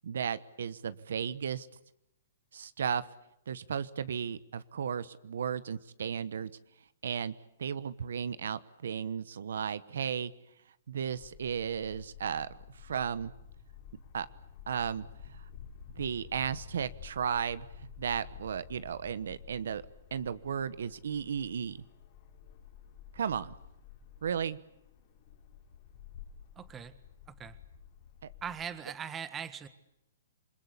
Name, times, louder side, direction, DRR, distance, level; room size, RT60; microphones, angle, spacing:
voice 1, 0.0-1.7 2.5-3.1 3.5-6.5 7.0-7.3 7.6-10.3 10.9-13.3 14.1-14.3 14.7-15.4 16.0-19.8 20.1-21.8 23.1-23.5 24.2-24.6 28.2-28.3, right 7 dB, 75° right, 15 dB, 1.1 m, -34 dB
sound 1, 11.1-28.7, left 8 dB, 50° left, 5.3 m, -52 dB
voice 2, 26.5-27.0 27.3-27.6 28.4-29.7, right 8 dB, 15° right, 12 dB, 1.6 m, -40 dB
28.0 x 21.5 x 8.4 m, 0.85 s
hypercardioid pair, 140°, 0 cm